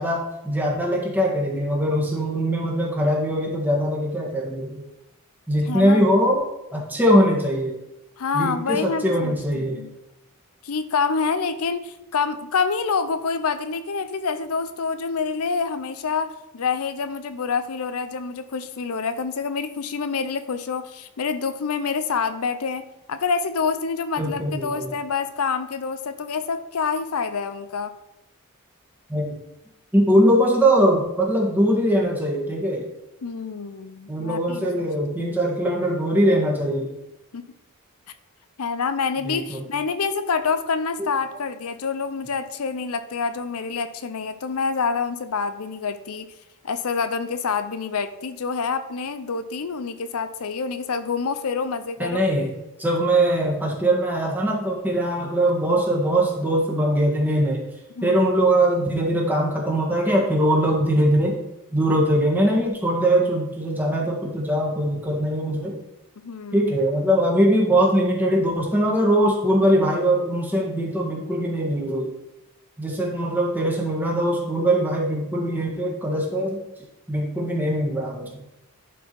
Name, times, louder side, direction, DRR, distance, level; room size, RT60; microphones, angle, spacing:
voice 1, 0.0-4.7 5.5-6.5 6.7-7.7 8.3-9.8 24.2-24.9 29.1-29.3 29.9-32.9 34.1-36.9 39.2-39.6 41.0-41.1 52.0-57.6 58.0-61.4 61.7-65.8 66.5-72.1 72.8-76.6 77.1-78.4, right 1 dB, 10° right, -1 dB, 1.6 m, -21 dB
voice 2, 5.7-6.0 8.2-9.9 10.6-27.9 33.2-34.9 37.3-37.5 38.6-46.3 46.6-52.2 58.0-58.2 66.2-66.7, left 5 dB, 90° left, 11 dB, 0.6 m, -27 dB
11.0 x 4.6 x 4.6 m, 0.91 s
head